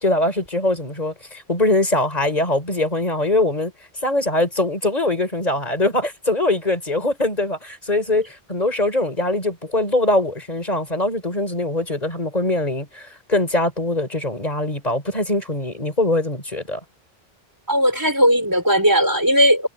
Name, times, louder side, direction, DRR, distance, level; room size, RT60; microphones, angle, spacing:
voice 1, 0.0-3.7 4.0-16.8, left 2 dB, 40° left, 4.6 m, -22 dB
voice 2, 17.7-19.7, equal, 20° right, 5.1 m, -17 dB
omnidirectional pair, 1.1 m